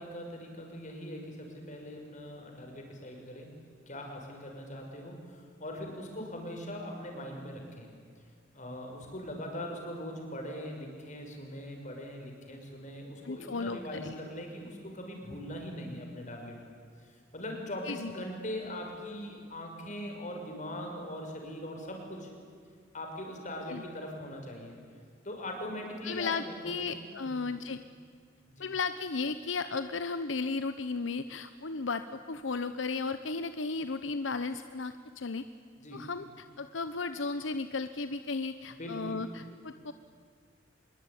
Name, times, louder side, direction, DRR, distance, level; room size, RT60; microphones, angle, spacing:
voice 1, 0.0-3.5 3.9-7.9 8.5-16.6 17.0-22.3 22.9-24.8 25.2-27.4 28.4-28.7 35.8-36.1 38.7-39.2, left 1 dB, 40° left, 2 dB, 6.1 m, -41 dB
voice 2, 13.2-14.1 17.9-18.1 23.7-23.8 26.0-27.8 28.6-35.4 35.9-39.9, left 4 dB, 80° left, 11 dB, 0.9 m, -35 dB
25.0 x 22.5 x 10.0 m, 2.1 s
head